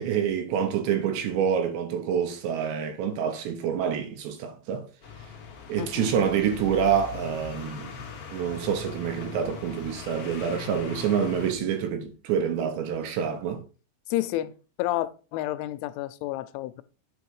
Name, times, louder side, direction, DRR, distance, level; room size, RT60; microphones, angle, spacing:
voice 1, 0.0-4.9 5.7-7.9 8.3-13.6, right 8 dB, 75° right, 3.0 m, -27 dB
sound 1, 5.0-11.5, left 6 dB, 70° left, 1.4 m, -40 dB
voice 2, 5.8-6.2 14.1-16.8, left 14 dB, 85° left, 3.1 m, -30 dB
9.5 x 5.5 x 4.7 m
omnidirectional pair, 5.5 m